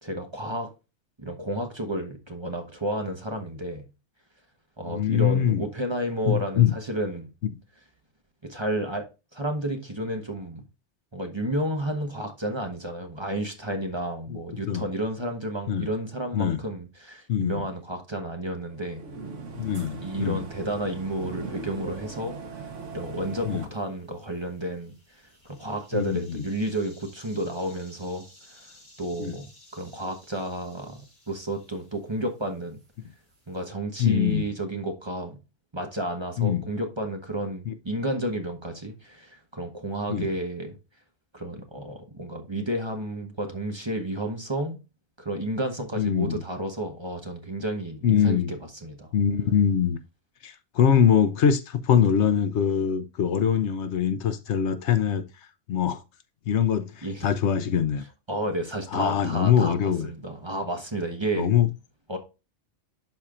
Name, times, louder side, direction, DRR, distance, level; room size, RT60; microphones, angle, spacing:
voice 1, 0.0-0.7 1.2-3.9 4.8-7.3 8.4-9.1 9.3-10.6 11.1-19.0 20.0-25.2 25.5-28.7 29.0-32.8 33.5-35.4 35.7-40.8 41.3-44.8 45.2-49.1 57.0-57.3 58.3-61.5 62.1-62.2, right 1 dB, 25° right, 1.1 m, -31 dB
voice 2, 4.9-5.7 6.3-6.7 7.4-7.5 14.3-14.4 14.7-14.9 15.7-15.9 16.3-16.6 17.3-17.6 19.5-20.4 23.5-23.7 25.9-26.4 29.2-29.4 34.0-34.5 36.4-36.7 37.7-37.8 40.1-40.3 46.0-46.4 48.0-48.5 49.1-50.0 50.4-55.2 55.7-56.0 56.5-58.0 58.9-60.1 61.4-61.7, left 8 dB, 70° left, 1.0 m, -23 dB
sound 1, 18.6-23.7, right 4 dB, 90° right, 1.5 m, -39 dB
sound 2, 22.7-33.7, left 1 dB, 35° left, 3.9 m, -57 dB
12.0 x 4.3 x 2.5 m
omnidirectional pair, 1.2 m